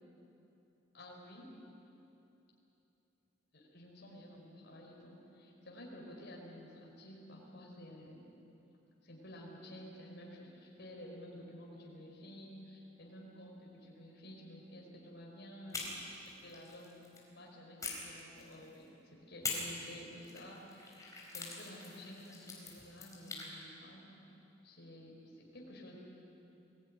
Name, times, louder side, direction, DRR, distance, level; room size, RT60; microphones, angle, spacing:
voice 1, 0.9-1.5 3.5-8.3 9.0-16.0 16.4-17.0 17.3-24.2 24.6-26.0, left 1 dB, 60° left, -2 dB, 5.0 m, -52 dB
sound 1, 15.7-17.3 17.8-18.8 19.4-23.5, left 3 dB, 20° left, 4.4 m, -44 dB
22.0 x 17.0 x 9.9 m, 2.9 s
head